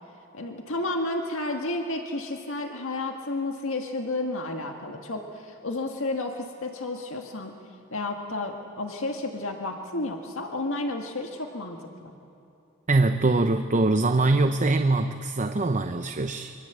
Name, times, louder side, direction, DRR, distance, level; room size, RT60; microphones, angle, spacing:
voice 1, 0.3-7.5 7.9-12.1, left 2 dB, 65° left, 3 dB, 1.8 m, -31 dB
voice 2, 12.9-16.5, right 2 dB, 35° right, 8 dB, 0.8 m, -23 dB
28.5 x 24.5 x 8.2 m, 2.7 s
head